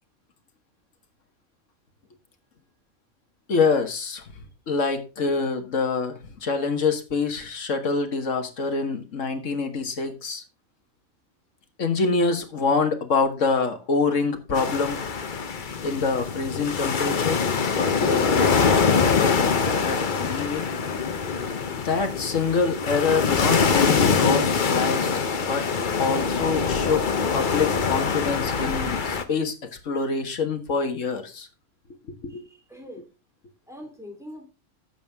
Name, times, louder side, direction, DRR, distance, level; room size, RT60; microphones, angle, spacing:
voice 1, 3.5-4.2 4.7-10.4 11.8-15.0 15.8-18.8 19.1-20.7 21.8-25.7 26.0-27.0 27.3-29.5 29.8-31.5 32.2-32.4, left 4 dB, 65° left, 7 dB, 1.8 m, -26 dB
sound 1, 14.5-29.2, left 5 dB, 40° left, 0.9 m, -24 dB
voice 2, 32.3-33.0 33.7-34.4, equal, ahead, 0 dB, 3.3 m, -43 dB
11.5 x 7.2 x 3.5 m, 0.30 s
omnidirectional pair, 1.4 m